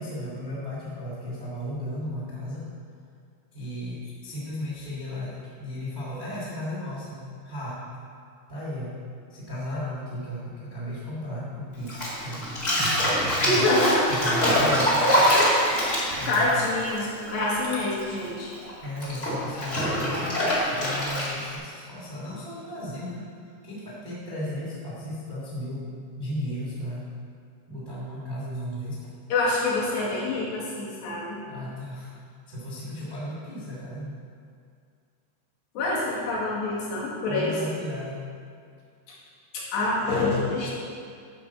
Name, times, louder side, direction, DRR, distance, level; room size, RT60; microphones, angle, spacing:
voice 1, 0.0-2.7 3.5-7.8 8.5-8.9 9.3-12.5 13.2-13.7 14.1-15.3 16.2-16.5 18.8-23.3 23.6-27.1 27.7-29.1 31.5-32.1 32.5-34.1 37.3-38.3, left 1 dB, 45° right, -8 dB, 0.6 m, -35 dB
Bathtub (filling or washing), 11.9-17.7 18.0-21.5, equal, 45° left, 0.9 m, -24 dB
voice 2, 13.4-14.0 16.3-18.5 29.3-31.4 35.8-37.6 39.5-40.7, left 2 dB, 65° left, -6 dB, 4.1 m, -26 dB
12.0 x 4.9 x 7.0 m, 2.2 s
omnidirectional pair, 5.5 m